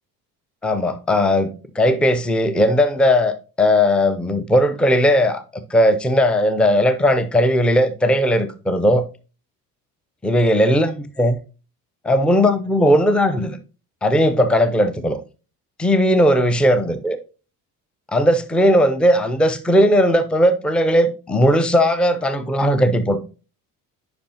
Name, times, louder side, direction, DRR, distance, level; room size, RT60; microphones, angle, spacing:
voice 1, 0.6-5.4 5.7-9.0 10.2-11.4 12.0-13.6 14.0-15.2 15.8-17.2 18.1-23.2, equal, ahead, 0.5 m, -17 dB
10.0 x 5.0 x 2.8 m
figure-of-eight pair, 55°, 47 cm